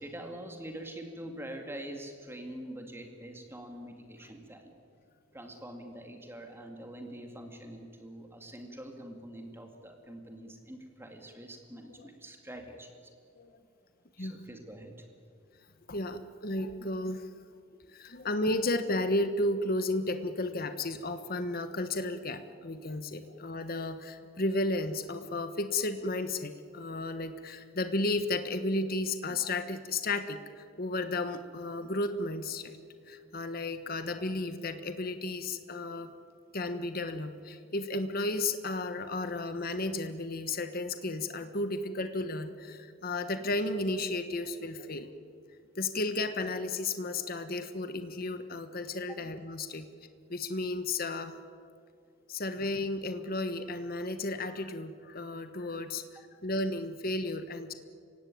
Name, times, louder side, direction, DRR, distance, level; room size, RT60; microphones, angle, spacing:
voice 1, 0.0-4.8 5.3-13.1 14.2-15.0 49.1-49.2, right 1 dB, 10° right, 3 dB, 2.4 m, -45 dB
voice 2, 15.9-17.3 17.9-32.8 33.1-36.1 36.5-45.1 45.8-49.9 50.3-51.3 52.3-57.7, left 2 dB, 45° left, 9 dB, 1.3 m, -33 dB
29.5 x 17.0 x 9.3 m, 2.3 s
head